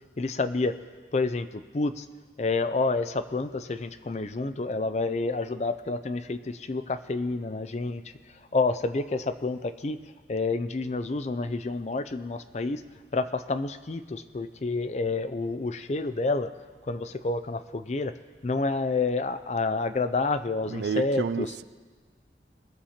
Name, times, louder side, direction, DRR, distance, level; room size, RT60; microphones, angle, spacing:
voice 1, 0.2-0.8 1.1-2.0 2.4-8.0 8.5-10.0 10.3-12.8 13.1-16.5 16.9-18.1 18.4-21.5, left 3 dB, 40° left, 0.4 m, -29 dB
voice 2, 20.7-21.6, right 6 dB, 75° right, 0.4 m, -30 dB
21.5 x 7.3 x 4.3 m
head